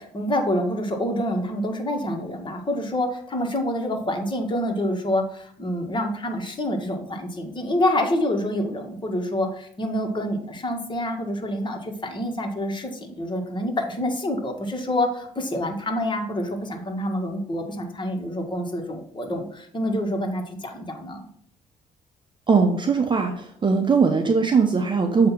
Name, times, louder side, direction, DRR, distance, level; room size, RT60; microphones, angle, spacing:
voice 1, 0.0-21.3, left 1 dB, 30° left, 3 dB, 1.7 m, -27 dB
voice 2, 22.5-25.3, right 5 dB, 35° right, 5 dB, 0.8 m, -20 dB
7.6 x 2.9 x 5.9 m, 0.64 s
supercardioid pair, 70°, 15 cm